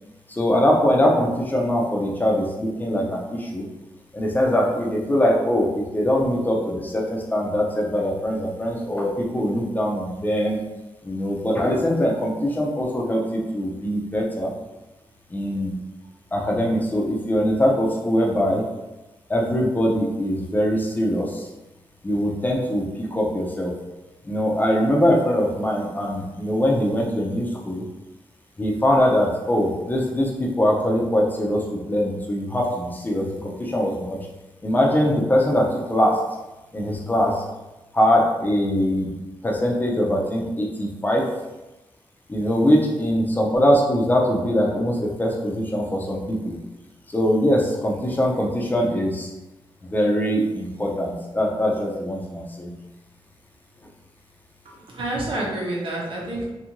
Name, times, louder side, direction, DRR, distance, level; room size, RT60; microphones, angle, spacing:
voice 1, 0.3-3.7 4.1-10.6 11.0-14.5 15.3-15.8 16.3-18.6 19.3-21.5 22.0-23.8 24.2-27.8 28.6-34.2 34.6-36.2 36.7-37.4 37.9-39.1 39.4-41.2 42.3-46.6 47.1-49.3 49.8-52.7, equal, 20° left, -2 dB, 0.5 m, -22 dB
voice 2, 54.6-56.5, right 1 dB, 70° right, -4 dB, 0.8 m, -28 dB
2.7 x 2.5 x 2.9 m, 1.0 s
wide cardioid pair, 170°, 9 cm